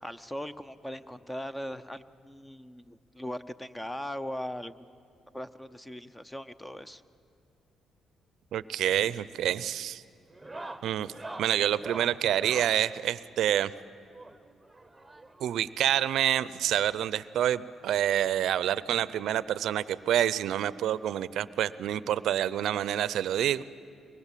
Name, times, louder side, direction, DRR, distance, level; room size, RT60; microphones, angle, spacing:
voice 1, 0.0-4.9 5.3-7.0, equal, 10° left, 13 dB, 0.7 m, -39 dB
voice 2, 8.5-10.0 10.8-11.1 11.4-13.7 15.4-23.6, right 11 dB, 75° right, 18 dB, 0.5 m, -27 dB
sound 1, 8.8-9.1 9.4-9.7 10.3-12.8 14.1-15.5 16.6-16.7 16.9-17.0 17.4-17.5 18.8-18.9 20.3-20.4, right 2 dB, 10° right, 1.2 m, -44 dB
23.5 x 20.5 x 7.5 m, 2.5 s
cardioid pair, 90°, 0 cm